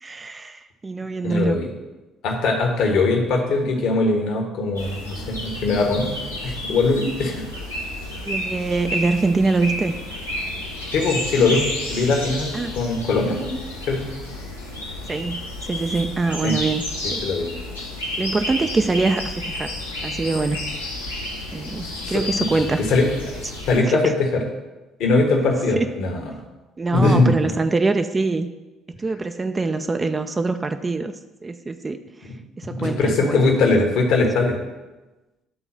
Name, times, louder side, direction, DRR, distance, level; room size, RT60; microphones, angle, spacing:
voice 1, 0.0-1.6 8.2-9.9 11.5-11.6 12.5-12.7 15.1-17.2 18.2-19.7 20.0-20.6 21.5-22.8 23.8-24.1 25.8-25.9 26.8-28.5 29.0-31.1 31.4-32.0 32.6-33.4, right 3 dB, 25° right, 8 dB, 0.5 m, -24 dB
voice 2, 1.2-1.7 2.2-6.1 6.4-7.4 10.9-11.6 11.9-13.5 13.9-14.1 16.4-16.5 17.2-17.6 22.1-22.2 22.5-23.1 23.7-24.4 25.0-26.3 26.9-27.3 32.7-34.6, left 3 dB, 55° left, 2 dB, 1.4 m, -21 dB
sound 1, 4.8-23.8, left 1 dB, 85° left, 1.1 m, -31 dB
10.0 x 3.9 x 5.9 m, 1.1 s
figure-of-eight pair, 50°, 0 cm